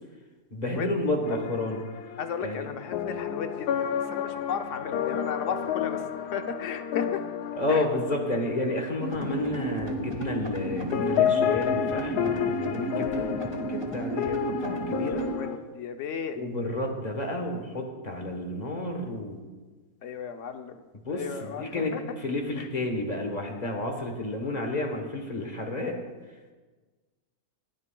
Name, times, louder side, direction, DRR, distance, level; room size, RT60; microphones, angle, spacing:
voice 1, 0.5-1.8 2.4-2.7 7.6-13.3 13.7-15.3 16.3-19.4 21.0-25.9, left 2 dB, 30° left, 3 dB, 1.1 m, -31 dB
sound 1, 1.2-10.7 10.9-15.6, left 9 dB, 85° left, 1.1 m, -31 dB
voice 2, 2.2-6.1 6.3-7.2 7.7-7.9 13.1-13.4 15.3-16.4 20.0-20.8 21.1-22.0 22.6-22.7, left 7 dB, 60° left, 7 dB, 0.9 m, -35 dB
sound 2, 9.0-15.3, right 2 dB, 20° right, 1.0 m, -33 dB
19.5 x 9.2 x 2.3 m, 1.3 s
omnidirectional pair, 1.6 m